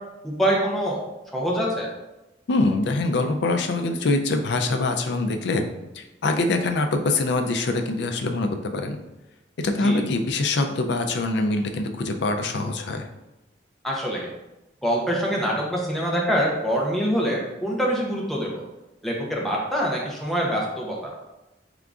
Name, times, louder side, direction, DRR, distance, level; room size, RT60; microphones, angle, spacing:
voice 1, 0.2-1.0 1.3-1.9 9.8-10.0 13.8-14.3 14.8-18.6 19.0-21.1, equal, ahead, -3 dB, 0.7 m, -25 dB
voice 2, 2.5-5.6 5.9-9.0 9.6-13.1, left 2 dB, 65° left, 6 dB, 0.4 m, -24 dB
3.7 x 3.5 x 2.4 m, 0.96 s
head